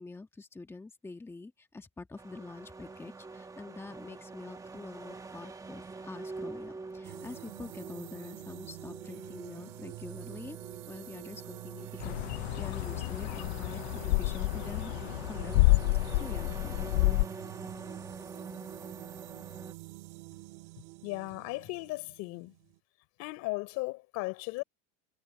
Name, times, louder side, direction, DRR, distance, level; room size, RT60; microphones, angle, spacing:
voice 1, 0.0-10.6 10.9-14.9 15.3-15.6 16.1-17.2, left 3 dB, 10° left, 1.5 m, -46 dB
sound 1, 2.2-19.7, right 3 dB, 10° right, 1.4 m, -46 dB
sound 2, 7.0-22.8, right 23 dB, 65° right, 2.6 m, -47 dB
sound 3, 12.0-17.3, left 23 dB, 85° left, 0.5 m, -29 dB
voice 2, 21.0-22.6 23.2-24.6, left 23 dB, 55° left, 3.9 m, -36 dB
supercardioid pair, 150°, 32 cm